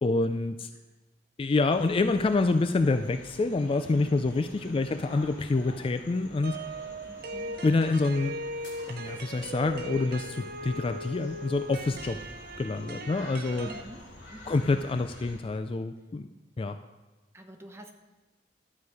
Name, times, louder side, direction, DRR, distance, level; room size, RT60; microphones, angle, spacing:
voice 1, 0.0-0.7 1.4-6.6 7.6-8.3 8.9-12.2 12.6-13.7 14.5-16.3 16.6-16.8, left 3 dB, 30° left, 9 dB, 0.3 m, -27 dB
sound 1, 1.7-15.4, left 1 dB, 90° left, 2.5 m, -49 dB
voice 2, 4.7-5.1 7.1-7.6 13.6-14.1 14.3-14.7 17.3-17.9, equal, 15° right, 4 dB, 0.9 m, -47 dB
sound 2, 6.4-13.8, right 1 dB, 55° right, 0.8 m, -39 dB
sound 3, 8.5-12.7, equal, 70° left, 3.6 m, -54 dB
12.0 x 8.1 x 4.8 m, 1.2 s
head